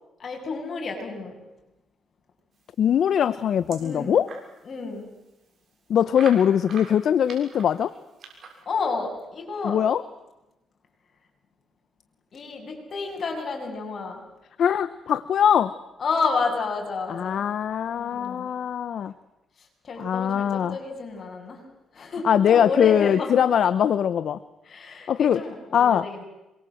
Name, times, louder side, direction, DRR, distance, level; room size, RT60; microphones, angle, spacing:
voice 1, 0.2-1.4 3.8-4.2 4.6-5.1 8.7-9.8 12.3-14.2 16.0-17.4 17.9-18.5 19.8-21.6 21.9-23.3 24.7-26.2, left 4 dB, 50° left, 2 dB, 7.9 m, -30 dB
voice 2, 2.8-4.3 5.9-7.9 9.6-10.0 14.6-15.7 17.1-19.1 20.0-20.8 22.2-24.4 25.1-25.4 25.7-26.1, left 9 dB, 65° left, 14 dB, 0.9 m, -21 dB
sound 1, 2.9-4.5 5.0-5.1 5.3-5.4 6.1-8.6, right 5 dB, 50° right, 7.0 m, -43 dB
26.5 x 23.0 x 7.9 m, 0.97 s
cardioid pair, 90°, 0 cm